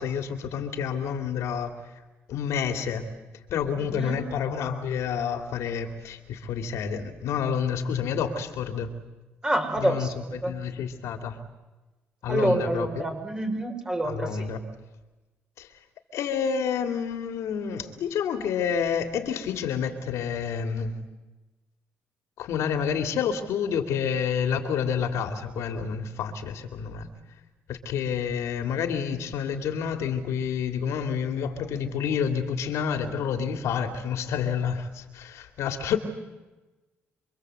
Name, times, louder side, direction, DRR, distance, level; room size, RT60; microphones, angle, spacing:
voice 1, 0.0-1.7 2.3-3.1 3.5-8.9 9.7-11.4 12.2-13.1 14.0-14.6 15.6-15.7 16.1-21.0 22.4-27.1 27.7-36.0, left 7 dB, 75° left, 7 dB, 3.1 m, -29 dB
voice 2, 9.4-10.5 12.3-14.3, right 1 dB, 15° right, 5 dB, 6.9 m, -27 dB
28.0 x 24.5 x 8.2 m, 1.1 s
cardioid pair, 90°, 5 cm